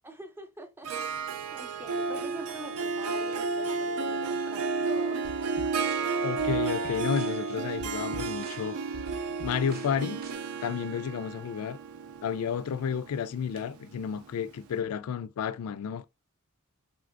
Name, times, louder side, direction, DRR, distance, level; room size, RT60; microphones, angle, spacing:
voice 1, 0.0-5.2, right 1 dB, 10° right, 0.5 m, -46 dB
Harp, 0.8-14.4, right 4 dB, 80° right, 0.4 m, -32 dB
sound 1, 5.2-10.3, right 1 dB, 45° right, 0.7 m, -46 dB
voice 2, 6.2-8.8 9.4-10.2 10.6-11.8 12.2-16.1, left 7 dB, 85° left, 0.3 m, -31 dB
3.6 x 2.5 x 2.4 m
head